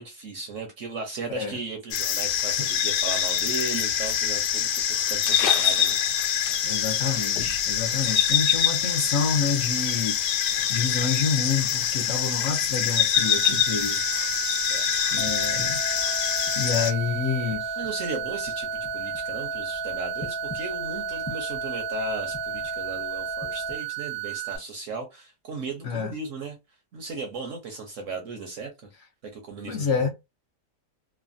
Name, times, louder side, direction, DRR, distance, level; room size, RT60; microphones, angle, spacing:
voice 1, 0.0-6.4 8.8-9.0 14.7-15.0 17.8-26.6 26.9-28.9 29.2-30.1, right 4 dB, 60° right, 0.8 m, -36 dB
sound 1, 1.9-16.9, left 9 dB, 80° left, 1.1 m, -25 dB
voice 2, 6.6-14.8 15.1-15.8 16.6-17.8 25.8-26.1 29.7-30.1, left 5 dB, 60° left, 0.8 m, -28 dB
sound 2, 13.1-24.6, right 23 dB, 80° right, 1.2 m, -34 dB
sound 3, 15.2-23.8, left 3 dB, 15° left, 0.6 m, -36 dB
3.2 x 2.1 x 2.5 m
omnidirectional pair, 1.8 m